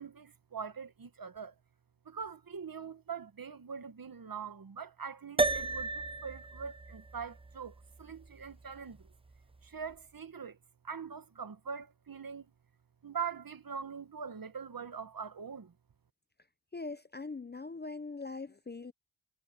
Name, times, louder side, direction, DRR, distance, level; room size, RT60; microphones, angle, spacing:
voice 1, 0.0-1.5 2.0-9.1 9.6-10.6 10.8-12.5 13.0-15.7, right 6 dB, 50° right, 1.7 m, -43 dB
sound 1, 5.4-10.0, right 3 dB, 10° right, 0.7 m, -36 dB
voice 2, 16.7-18.9, left 3 dB, 20° left, 0.7 m, -41 dB
cardioid pair, 60°, 45 cm